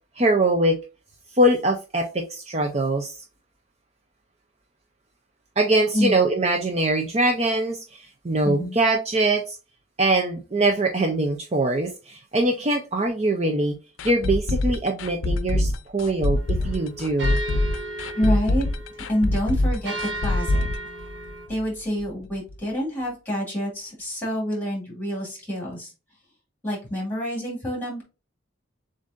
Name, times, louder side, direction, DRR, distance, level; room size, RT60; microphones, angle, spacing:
voice 1, 0.2-0.8 1.4-3.2 5.6-9.6 10.0-13.8 14.0-17.4, right 2 dB, 35° right, 0.5 m, -23 dB
voice 2, 8.4-8.8 18.1-18.7 19.1-19.9 20.2-20.7 21.5-25.9 26.6-28.0, equal, 10° left, 2.6 m, -27 dB
sound 1, 14.0-21.7 22.0-22.1 22.5-22.6, left 1 dB, 90° left, 0.5 m, -24 dB
sound 2, 16.4-21.5, right 1 dB, 60° right, 1.4 m, -35 dB
7.1 x 2.6 x 2.5 m
head